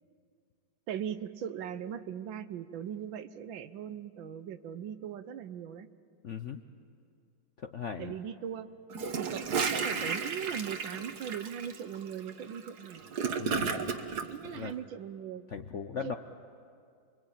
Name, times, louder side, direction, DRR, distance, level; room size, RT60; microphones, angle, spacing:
voice 1, 0.9-5.9 8.0-8.7 9.2-13.0 14.3-15.5 16.0-16.2, right 9 dB, 75° right, 12 dB, 1.6 m, -39 dB
voice 2, 6.2-6.6 7.6-8.2 13.4-13.8 14.5-14.7 15.5-16.2, left 6 dB, 55° left, 7 dB, 0.8 m, -38 dB
Gurgling / Toilet flush, 8.9-14.3, right 5 dB, 55° right, 1.8 m, -33 dB
28.0 x 23.5 x 8.9 m, 2.3 s
omnidirectional pair, 2.2 m